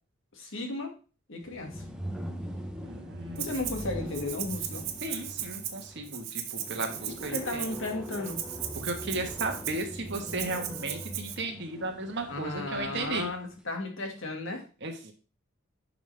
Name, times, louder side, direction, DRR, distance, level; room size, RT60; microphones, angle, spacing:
voice 1, 0.4-1.0 1.3-1.8 3.4-4.8 7.2-8.4 12.3-14.6, left 2 dB, 60° left, 3 dB, 1.9 m, -34 dB
sound 1, 1.4-13.4, equal, 5° right, 0.8 m, -42 dB
voice 2, 2.8-3.6 5.0-7.7 8.7-13.3 14.8-15.1, right 2 dB, 55° right, 4 dB, 1.4 m, -35 dB
Rattle (instrument), 3.4-3.9 4.1-11.4, right 10 dB, 90° right, 1.2 m, -37 dB
10.5 x 5.3 x 3.4 m, 0.36 s
head